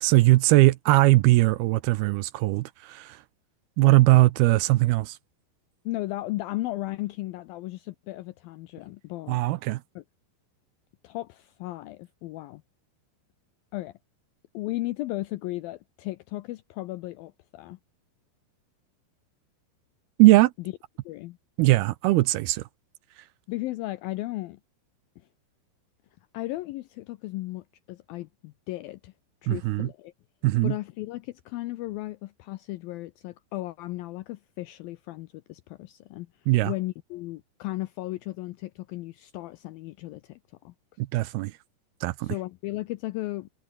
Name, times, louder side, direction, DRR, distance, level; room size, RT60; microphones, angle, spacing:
voice 1, 0.0-3.2 3.8-5.2 9.3-9.8 20.2-20.5 21.6-22.6 29.5-29.9 30.4-30.7 36.5-36.7 41.0-41.5 42.0-42.4, right 19 dB, 80° right, 2.4 m, -20 dB
voice 2, 5.9-9.4 10.0-10.1 11.0-12.6 13.7-13.9 14.5-17.8 21.1-21.4 23.5-24.6 26.3-29.1 29.4-30.1 30.6-36.3 36.6-40.7 42.2-43.5, left 18 dB, 85° left, 2.0 m, -35 dB
omnidirectional pair, 5.0 m